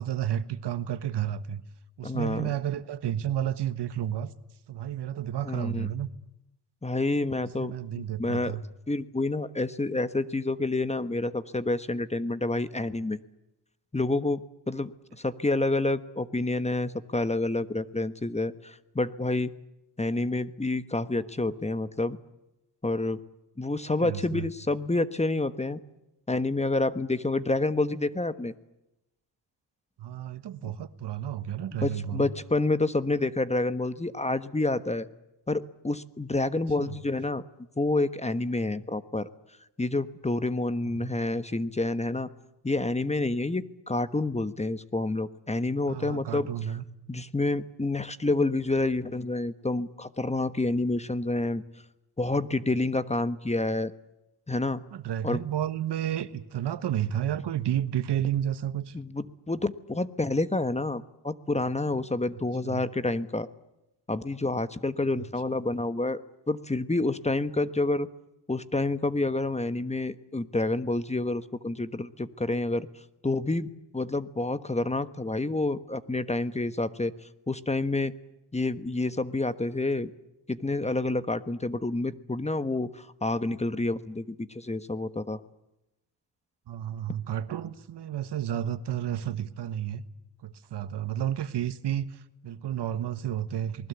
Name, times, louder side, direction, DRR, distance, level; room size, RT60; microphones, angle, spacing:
voice 1, 0.0-1.6 2.0-4.3 4.7-6.1 7.4-8.6 24.0-24.5 30.0-32.3 36.8-37.0 41.0-41.1 45.9-46.8 54.9-58.9 62.6-62.8 65.2-65.3 86.7-90.0 90.4-93.9, right 10 dB, 75° right, 1.4 m, -31 dB
voice 2, 2.0-2.5 5.4-5.9 6.8-8.6 8.9-13.2 13.9-19.5 20.0-22.2 22.8-23.2 23.6-25.8 26.3-28.5 31.8-35.1 35.5-37.4 37.8-39.3 39.8-42.3 42.6-46.5 47.1-51.6 52.2-53.9 54.5-54.8 55.2-55.4 58.9-63.5 64.1-66.2 66.5-68.1 68.5-72.9 73.2-77.1 77.5-78.1 78.5-80.1 80.5-85.4, left 2 dB, 15° left, 1.2 m, -28 dB
27.5 x 20.5 x 8.2 m
cardioid pair, 80°, 41 cm